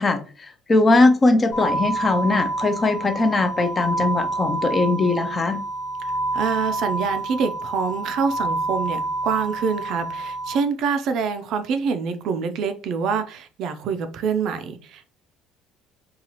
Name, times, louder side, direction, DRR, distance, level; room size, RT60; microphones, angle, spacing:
voice 1, 0.0-5.6, left 2 dB, 20° left, 8 dB, 0.4 m, -20 dB
sound 1, 1.5-10.6, right 2 dB, 90° left, 1.5 m, -28 dB
voice 2, 6.3-15.0, right 5 dB, 55° right, 9 dB, 0.4 m, -26 dB
3.9 x 2.3 x 2.9 m, 0.39 s
cardioid pair, 155°, 0 cm